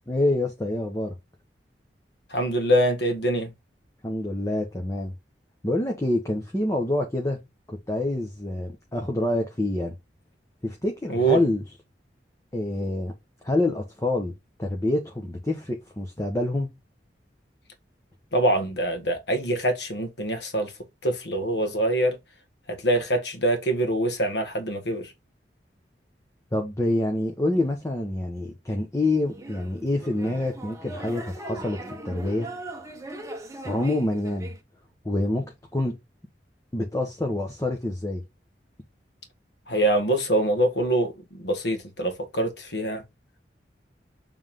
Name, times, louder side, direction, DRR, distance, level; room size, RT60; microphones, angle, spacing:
voice 1, 0.1-1.1 4.0-5.1 5.6-7.4 7.7-9.9 10.6-11.6 12.5-13.1 13.4-14.3 14.6-16.7 26.5-31.8 32.0-32.5 33.6-34.5 35.0-35.9 36.7-38.2, left 1 dB, 20° left, 1.2 m, -26 dB
voice 2, 2.3-3.5 11.1-11.4 18.3-20.7 21.0-22.2 22.7-25.1 39.7-43.0, right 1 dB, 70° left, 1.8 m, -24 dB
sound 1, 29.3-34.6, right 2 dB, 20° right, 1.2 m, -39 dB
7.2 x 3.7 x 3.7 m
head